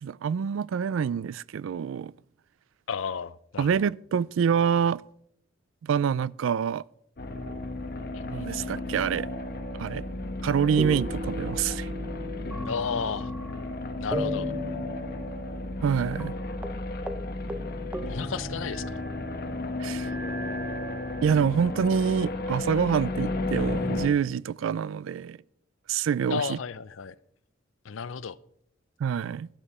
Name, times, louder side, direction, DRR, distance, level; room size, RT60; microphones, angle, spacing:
voice 1, 0.0-2.1 3.6-5.0 5.8-6.8 8.3-9.3 9.8-10.0 10.4-11.9 15.8-16.3 19.8-20.1 21.2-25.4 25.9-26.6 29.0-29.5, right 7 dB, 80° right, 0.3 m, -26 dB
voice 2, 2.9-3.8 8.1-8.5 12.7-13.3 14.0-14.5 18.1-19.0 26.3-27.1 27.8-28.4, left 6 dB, 80° left, 0.5 m, -33 dB
sound 1, 7.2-24.1, left 2 dB, 50° left, 1.2 m, -33 dB
sound 2, 10.8-13.7 14.1-15.9 16.2-16.3 16.6-16.8 17.1-17.2 17.5-19.2 20.0-21.6 22.3-23.2, equal, 5° right, 0.6 m, -37 dB
12.5 x 11.5 x 4.2 m
head